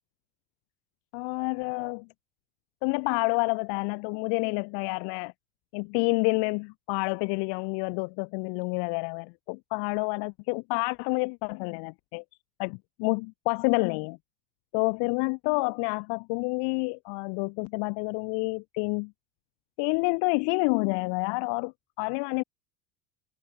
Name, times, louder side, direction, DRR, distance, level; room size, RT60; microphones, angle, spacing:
voice 1, 1.1-2.1 2.8-5.3 5.7-12.2 12.6-14.2 14.7-19.1 19.8-21.7 22.0-22.4, left 35 dB, 60° left, 0.8 m, -28 dB
hypercardioid pair, 85°, 47 cm